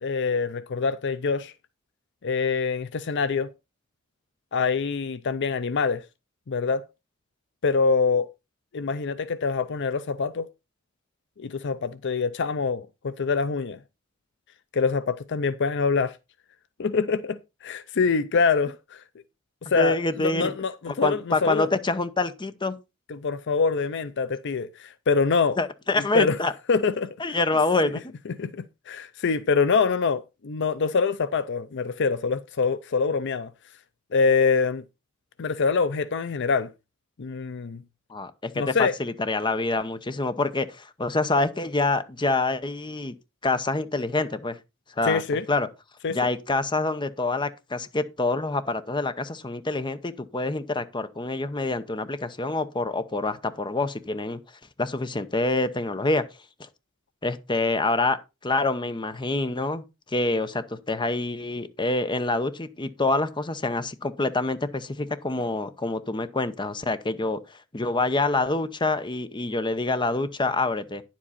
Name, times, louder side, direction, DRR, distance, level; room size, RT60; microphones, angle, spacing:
voice 1, 0.0-1.5 2.2-3.5 4.5-6.0 6.5-6.8 7.6-8.3 8.7-10.5 11.4-13.8 14.7-16.2 16.8-19.0 19.7-21.7 23.1-25.6 25.9-26.4 26.7-27.1 28.4-33.5 34.1-34.8 35.4-36.7 37.2-37.8 38.6-38.9 45.0-45.4 46.0-46.2, left 5 dB, 55° left, 0.5 m, -25 dB
voice 2, 19.8-20.5 20.9-22.8 25.6-26.5 27.2-28.0 38.1-43.1 43.4-44.6 45.0-45.2 45.5-45.7 46.1-54.4 54.8-56.2 56.6-56.7 57.2-59.8 60.1-71.0, left 2 dB, 20° left, 0.8 m, -26 dB
10.0 x 7.5 x 4.1 m
head